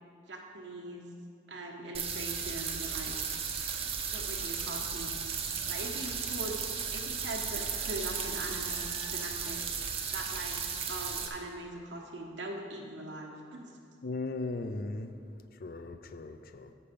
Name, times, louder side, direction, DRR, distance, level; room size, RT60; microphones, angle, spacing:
voice 1, 0.3-1.1 1.5-3.2 4.0-5.3 5.7-10.6 10.9-13.7, right 1 dB, 75° right, 0 dB, 1.2 m, -41 dB
sound 1, 1.9-11.3, right 6 dB, 30° right, 0.7 m, -35 dB
voice 2, 14.0-15.1 15.6-16.7, left 2 dB, 50° left, 9 dB, 0.4 m, -37 dB
8.5 x 6.7 x 5.2 m, 2.3 s
head